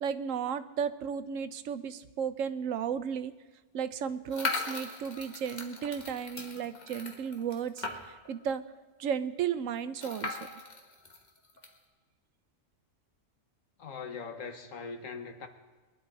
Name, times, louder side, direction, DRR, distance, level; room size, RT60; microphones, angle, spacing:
voice 1, 0.0-3.3 3.7-7.9 8.3-8.6 9.0-10.4, right 7 dB, 85° right, 12 dB, 1.1 m, -34 dB
sound 1, 4.3-8.3 8.7-8.8 9.0-9.1 10.0-11.7, left 3 dB, 35° left, 1.5 m, -38 dB
voice 2, 13.8-15.5, left 5 dB, 90° left, 7 dB, 1.6 m, -41 dB
22.5 x 11.0 x 4.1 m, 1.3 s
omnidirectional pair, 1.3 m